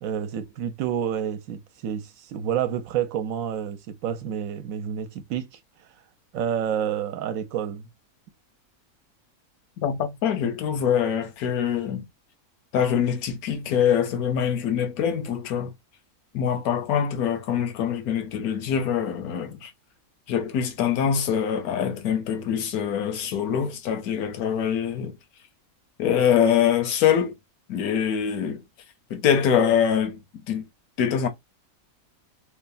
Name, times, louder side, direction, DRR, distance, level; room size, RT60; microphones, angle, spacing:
voice 1, 0.0-5.5 6.3-7.9, right 9 dB, 75° right, 1.0 m, -29 dB
voice 2, 9.8-12.1 12.7-15.7 16.3-19.7 20.3-25.1 26.0-27.4 27.7-28.6 29.1-30.2 30.5-30.6 31.0-31.3, left 8 dB, 85° left, 1.2 m, -24 dB
3.2 x 2.1 x 2.4 m
omnidirectional pair, 1.5 m